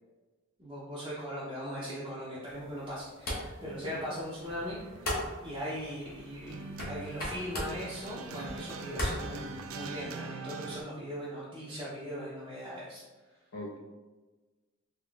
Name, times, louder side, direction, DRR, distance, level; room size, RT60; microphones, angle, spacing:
voice 1, 0.6-4.8 5.1-13.0, equal, 25° right, -9 dB, 0.6 m, -39 dB
sound 1, 2.5-10.0, left 1 dB, 45° left, 0.8 m, -40 dB
voice 2, 3.6-4.0 13.5-13.8, left 1 dB, 90° left, -3 dB, 0.8 m, -42 dB
sound 2, 4.4-10.8, right 4 dB, 75° right, 0.3 m, -44 dB
3.7 x 3.0 x 2.3 m, 1.2 s
head